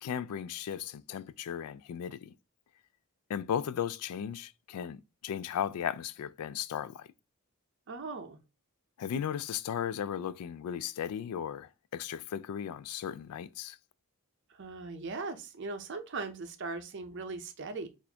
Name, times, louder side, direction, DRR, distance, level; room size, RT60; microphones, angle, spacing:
voice 1, 0.0-2.3 3.3-7.1 9.0-13.8, left 9 dB, 85° left, 0.3 m, -36 dB
voice 2, 7.9-8.4 14.6-17.9, right 3 dB, 55° right, 0.6 m, -39 dB
4.0 x 2.5 x 2.7 m
head